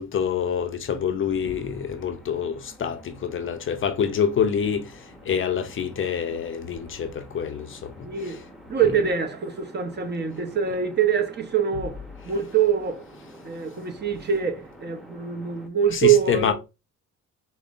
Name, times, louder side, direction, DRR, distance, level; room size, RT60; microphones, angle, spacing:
voice 1, 0.0-8.4 15.9-16.5, left 7 dB, 45° left, 0.5 m, -27 dB
sound 1, 1.0-15.7, right 1 dB, ahead, 0.8 m, -48 dB
voice 2, 8.0-8.4 8.7-13.1 13.4-16.5, right 8 dB, 35° right, 0.7 m, -24 dB
5.2 x 2.1 x 2.4 m
cardioid pair, 90°, 30 cm